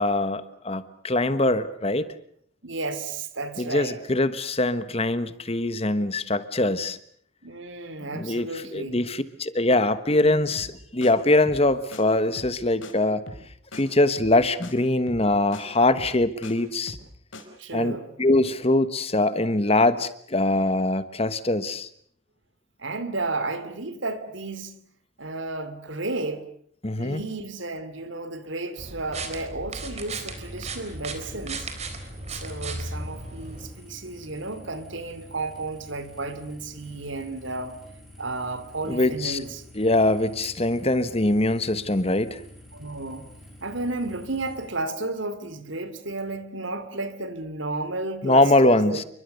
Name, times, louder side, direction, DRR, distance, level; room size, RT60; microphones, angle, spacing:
voice 1, 0.0-2.1 3.6-7.0 8.1-13.2 13.7-17.0 17.7-21.9 26.8-27.2 38.9-39.4 39.8-42.4 48.2-49.0, left 2 dB, 30° left, 1.3 m, -23 dB
voice 2, 2.6-4.0 7.4-9.0 17.6-18.1 22.8-24.8 25.2-26.4 26.9-31.7 32.3-37.8 38.2-39.6 42.7-43.3 43.6-49.0, right 2 dB, 70° right, 2.8 m, -32 dB
sound 1, 10.6-10.8 11.0-11.1 11.5-11.7 11.9-12.0 12.4-12.6 12.8-12.9 13.3-13.5 13.7-13.8 14.2-14.4 14.6-14.7 15.1-15.3 15.5-15.6 16.0-16.5 16.9-17.1 17.3-17.4, left 1 dB, 75° left, 5.0 m, -40 dB
sound 2, 28.8-33.7, right 3 dB, 35° right, 3.9 m, -36 dB
sound 3, 30.2-44.7, left 1 dB, ahead, 7.1 m, -48 dB
29.0 x 24.0 x 6.7 m
head